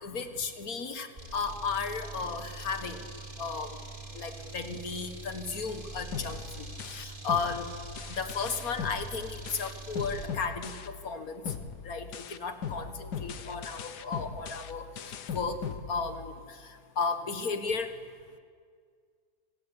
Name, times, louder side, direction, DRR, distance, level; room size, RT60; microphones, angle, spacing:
voice 1, 0.0-3.0 3.4-3.8 4.1-7.7 8.1-11.4 11.8-14.9 15.3-15.6 15.9-16.6 17.0-17.9, left 5 dB, 60° left, 8 dB, 2.0 m, -34 dB
sound 1, 1.2-10.4, right 3 dB, 30° right, 3.1 m, -44 dB
sound 2, 6.1-11.2 11.5-16.5, left 7 dB, 80° left, 1.7 m, -40 dB
26.5 x 18.5 x 9.9 m, 2.1 s
omnidirectional pair, 1.7 m